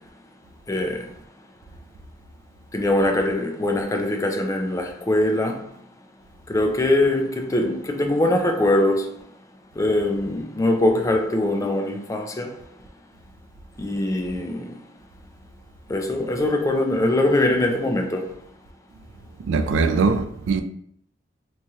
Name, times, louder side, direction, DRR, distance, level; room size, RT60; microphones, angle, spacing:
voice 1, 0.7-1.1 2.7-5.7 6.5-9.1 9.8-12.5 13.8-14.7 15.9-18.3, left 1 dB, 15° left, 0.4 m, -22 dB
voice 2, 19.4-20.6, right 4 dB, 85° right, 0.3 m, -21 dB
3.0 x 2.3 x 2.8 m
head